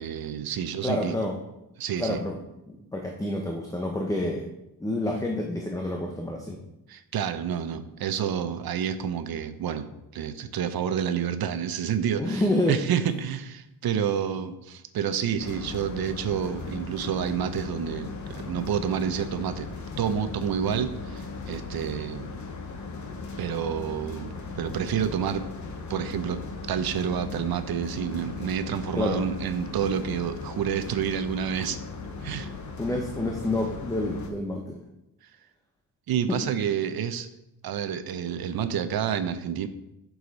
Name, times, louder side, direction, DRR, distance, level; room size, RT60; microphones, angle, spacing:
voice 1, 0.0-1.2 1.8-2.2 6.9-9.9 10.1-19.7 20.0-22.3 23.4-25.5 25.9-26.4 26.7-31.8 32.2-32.5 36.1-37.3 37.6-39.7, right 8 dB, 65° right, 11 dB, 0.7 m, -29 dB
voice 2, 0.8-1.4 2.0-2.4 2.9-4.5 4.8-6.6 12.2-12.8 29.0-29.3 32.8-34.6 36.3-36.4, left 1 dB, 10° left, 1 dB, 0.8 m, -28 dB
sound 1, 15.4-34.3, left 3 dB, 50° left, 1.1 m, -38 dB
8.0 x 6.4 x 4.1 m, 0.91 s
wide cardioid pair, 145°, 38 cm